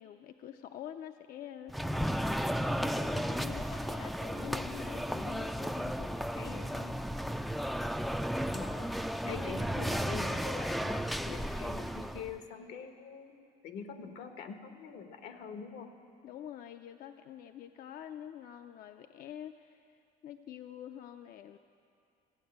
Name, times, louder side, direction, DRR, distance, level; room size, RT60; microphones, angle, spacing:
voice 1, 0.0-2.3 2.6-7.0 9.2-9.5 16.2-21.6, left 10 dB, 60° left, 7 dB, 0.5 m, -47 dB
sound 1, 1.7-12.3, equal, ahead, 0.3 m, -34 dB
voice 2, 8.5-13.4 13.6-15.9, left 6 dB, 85° left, 6 dB, 1.2 m, -44 dB
15.0 x 8.6 x 8.6 m, 2.5 s
cardioid pair, 110°, 17 cm